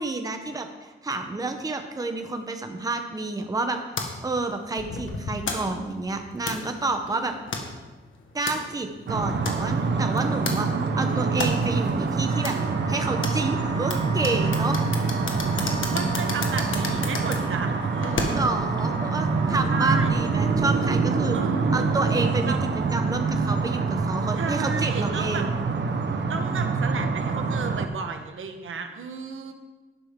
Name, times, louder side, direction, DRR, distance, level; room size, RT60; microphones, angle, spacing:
voice 1, 0.0-3.8 4.2-7.3 8.3-10.7 11.0-12.6 12.9-14.8 18.3-21.4 21.7-22.5 22.9-25.5, right 3 dB, 20° right, 5 dB, 0.8 m, -29 dB
sound 1, 4.0-18.6, left 3 dB, 75° left, 1.5 m, -35 dB
sound 2, 9.1-27.9, right 4 dB, 60° right, 0.9 m, -25 dB
Wind instrument woodwind instrument, 12.2-20.6, equal, 25° left, 1.9 m, -39 dB
voice 2, 15.7-18.5 19.7-20.1 21.3-21.7 22.4-22.6 24.4-25.5 26.3-29.5, right 5 dB, 80° right, 6 dB, 1.1 m, -33 dB
12.0 x 11.0 x 3.7 m, 1.2 s
wide cardioid pair, 170°, 20 cm